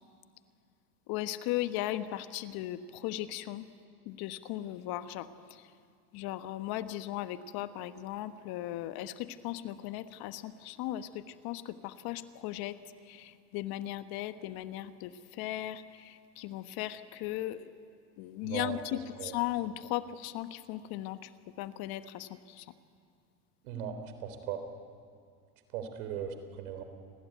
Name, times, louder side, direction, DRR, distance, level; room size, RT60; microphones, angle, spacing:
voice 1, 1.1-3.6 4.1-5.3 6.1-11.1 11.4-12.7 13.1-15.1 15.4-15.8 16.4-17.7 18.2-21.2 21.6-22.3, left 14 dB, 55° left, 11 dB, 1.5 m, -37 dB
voice 2, 18.4-19.3 23.6-24.6 25.7-26.8, right 8 dB, 70° right, 8 dB, 3.7 m, -38 dB
28.5 x 20.5 x 9.4 m, 2.2 s
hypercardioid pair, 100°, 44 cm